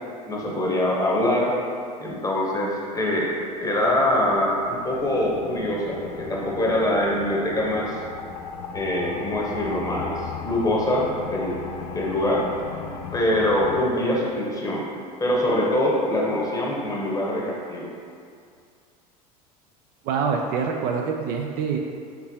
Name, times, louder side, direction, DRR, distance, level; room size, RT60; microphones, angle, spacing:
voice 1, 0.3-1.5 2.0-3.3 3.6-7.9 8.7-11.6 11.9-12.4 13.1-14.8 15.2-17.9, left 1 dB, 15° left, -3 dB, 1.0 m, -24 dB
sound 1, 3.4-13.9, left 6 dB, 55° left, 0.5 m, -37 dB
voice 2, 20.0-21.8, right 6 dB, 45° right, 2 dB, 0.4 m, -25 dB
4.5 x 3.9 x 2.8 m, 2.3 s
hypercardioid pair, 80°, 21 cm